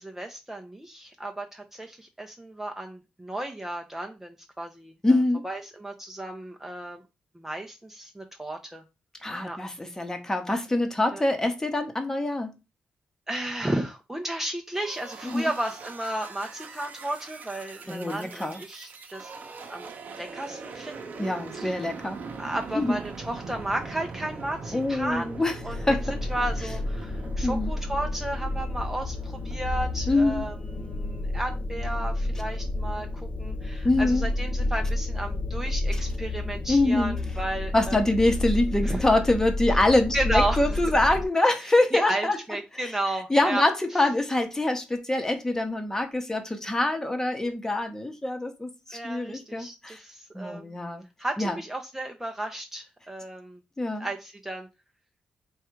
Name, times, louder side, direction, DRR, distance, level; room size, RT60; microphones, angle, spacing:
voice 1, 0.0-4.9 5.4-7.0 7.4-8.8 9.4-9.6 11.1-11.2 13.3-19.3 19.7-19.9 20.2-21.9 22.4-25.3 25.6-25.8 26.1-33.1 33.4-38.0 38.8-39.0 40.1-40.8 41.9-43.6 48.9-50.7 51.2-53.6 54.0-54.7, right 1 dB, 10° right, 3 dB, 0.6 m, -33 dB
voice 2, 5.0-5.4 9.2-12.6 15.2-15.5 17.9-18.6 21.2-22.2 22.7-23.0 24.7-26.0 27.4-27.7 30.1-30.5 33.8-34.3 35.9-36.0 36.7-37.2 37.7-42.4 42.8-42.9 43.3-50.0 50.3-51.0 51.4-51.6 53.8-54.1, left 2 dB, 15° left, 6 dB, 0.9 m, -25 dB
sound 1, 14.7-31.4, right 4 dB, 65° right, 0.8 m, -42 dB
sound 2, 25.6-41.2, left 2 dB, 45° left, 0.5 m, -30 dB
3.5 x 2.4 x 4.5 m, 0.27 s
cardioid pair, 80°, 3 cm